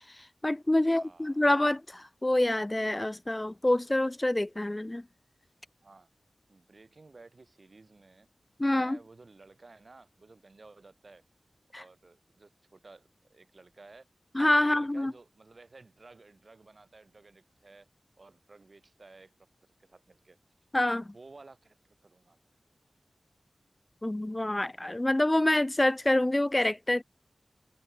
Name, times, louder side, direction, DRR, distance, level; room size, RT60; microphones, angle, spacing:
voice 1, 0.2-5.0 8.6-9.0 11.7-11.8 14.3-15.1 20.7-21.1 24.0-27.0, left 1 dB, 25° left, 0.9 m, -27 dB
voice 2, 0.7-1.6 5.8-6.1 6.5-8.3 8.6-11.2 11.8-14.1 14.6-17.9 18.2-19.3 19.8-20.4 21.1-21.8 22.0-22.4, right 3 dB, 60° right, 5.1 m, -54 dB
cardioid pair, 50°, 0 cm